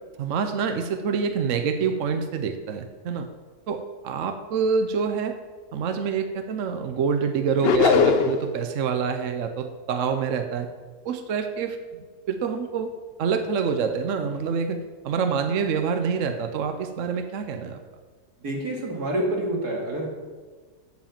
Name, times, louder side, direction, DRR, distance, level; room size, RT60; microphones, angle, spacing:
voice 1, 0.2-3.3 3.7-5.4 5.7-10.7 11.0-11.8 12.3-12.9 13.2-14.8 15.0-17.8, right 6 dB, 60° right, 7 dB, 1.0 m, -26 dB
sound 1, 7.6-8.5, left 6 dB, 55° left, 0.7 m, -19 dB
voice 2, 18.4-20.1, right 1 dB, 75° right, -1 dB, 2.6 m, -27 dB
8.1 x 7.3 x 7.2 m, 1.4 s
omnidirectional pair, 1.7 m